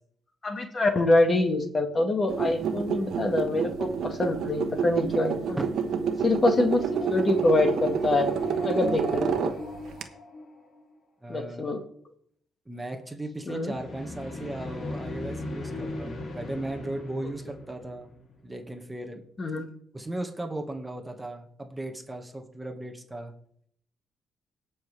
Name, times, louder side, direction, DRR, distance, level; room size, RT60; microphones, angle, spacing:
voice 1, 0.4-5.6 6.2-6.8 7.1-8.3 8.6-9.5 11.3-11.8 13.5-13.7 19.4-19.7, left 2 dB, 35° left, 6 dB, 1.8 m, -25 dB
sound 1, 2.3-10.0, right 6 dB, 70° right, 1.2 m, -29 dB
sound 2, 6.6-10.9 13.5-18.5, left 2 dB, 50° left, 3.1 m, -38 dB
voice 2, 11.2-11.6 12.7-18.1 18.4-19.2 19.9-23.3, right 1 dB, 10° right, 4 dB, 1.8 m, -36 dB
18.0 x 6.5 x 3.5 m, 0.63 s
cardioid pair, 90°, 0 cm